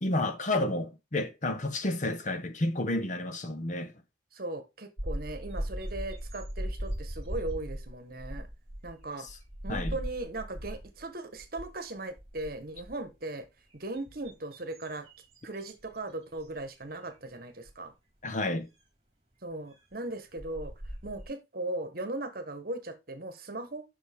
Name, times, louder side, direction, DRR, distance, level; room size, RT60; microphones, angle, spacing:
voice 1, 0.0-3.9 9.2-9.3 9.7-10.0 18.2-18.7, left 2 dB, 45° left, 0.9 m, -31 dB
voice 2, 4.3-8.5 8.8-9.3 9.6-13.5 13.7-15.1 15.4-17.9 19.4-20.7 21.0-23.8, right 2 dB, 55° right, 1.3 m, -38 dB
sound 1, 5.0-11.0 11.4-11.8 12.1-13.1 13.7-16.0 16.4-16.6 17.7-17.8 19.9-20.0 20.4-21.3, equal, 35° right, 2.3 m, -38 dB
7.2 x 6.0 x 3.6 m
head